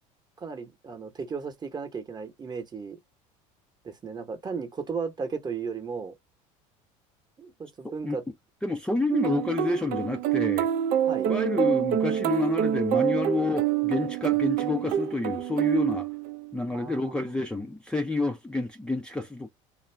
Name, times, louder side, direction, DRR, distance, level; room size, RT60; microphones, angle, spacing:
voice 1, 0.4-3.0 3.8-6.1 7.4-8.2 11.1-11.3 16.7-17.3, right 5 dB, 25° right, 0.9 m, -35 dB
voice 2, 8.6-10.7 11.3-16.1 16.5-19.5, left 3 dB, 5° left, 0.5 m, -29 dB
sound 1, 9.1-16.6, right 11 dB, 60° right, 0.5 m, -26 dB
2.5 x 2.3 x 3.3 m
supercardioid pair, 95°, 17 cm